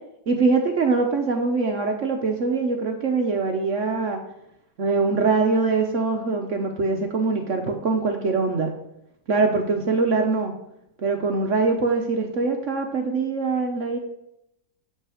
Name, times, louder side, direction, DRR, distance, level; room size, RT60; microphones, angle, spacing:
voice 1, 0.3-4.2 4.8-8.7 9.3-10.5 11.0-14.0, right 4 dB, 55° right, 4 dB, 0.9 m, -23 dB
7.8 x 5.6 x 4.9 m, 0.81 s
omnidirectional pair, 2.0 m